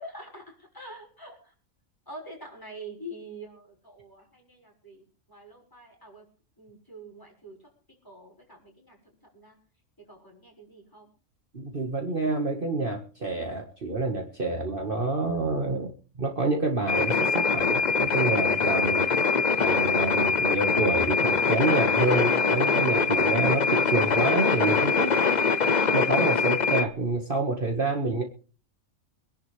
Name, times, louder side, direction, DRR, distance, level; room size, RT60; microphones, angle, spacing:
voice 1, 0.0-1.5 2.1-6.2 6.6-7.7 8.0-9.0 9.3-9.6 10.0-11.1 15.7-15.9 18.9-19.0, right 1 dB, 15° left, 1 dB, 6.1 m, -46 dB
voice 2, 11.5-15.9 16.2-19.1 19.6-25.1 25.9-28.2, right 3 dB, 40° right, 2 dB, 2.1 m, -27 dB
sound 1, 16.9-26.8, left 5 dB, 35° left, 0.8 m, -23 dB
25.0 x 11.0 x 3.5 m, 0.37 s
omnidirectional pair, 1.5 m